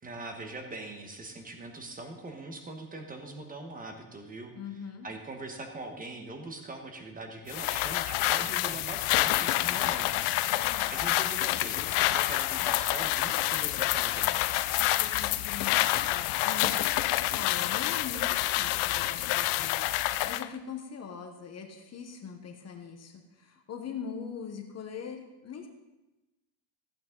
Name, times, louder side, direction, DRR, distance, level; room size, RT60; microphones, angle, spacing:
voice 1, 0.0-4.5 5.0-14.4, right 2 dB, 15° right, 5 dB, 1.2 m, -42 dB
voice 2, 4.5-5.1 10.5-11.0 14.8-19.9 20.2-25.7, left 6 dB, 30° left, 4 dB, 1.1 m, -42 dB
sound 1, 7.5-20.5, left 16 dB, 85° left, 0.6 m, -28 dB
14.5 x 8.5 x 3.9 m, 1.1 s
cardioid pair, 160°, 49 cm